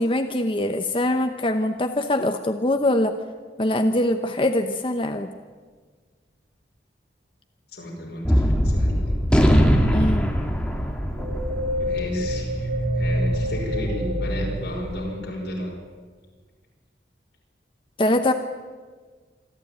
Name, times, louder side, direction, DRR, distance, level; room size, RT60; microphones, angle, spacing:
voice 1, 0.0-3.2 3.6-5.3 9.9-10.3 18.0-18.3, left 1 dB, 30° left, 6 dB, 0.9 m, -23 dB
voice 2, 7.7-9.2 11.8-15.8, equal, 75° left, -2 dB, 5.7 m, -33 dB
Gunshot gunfire, 8.2-14.8, equal, 5° left, 2.0 m, -22 dB
sound 1, 11.2-15.8, equal, 55° right, 2.3 m, -27 dB
27.0 x 12.0 x 9.1 m, 1.5 s
head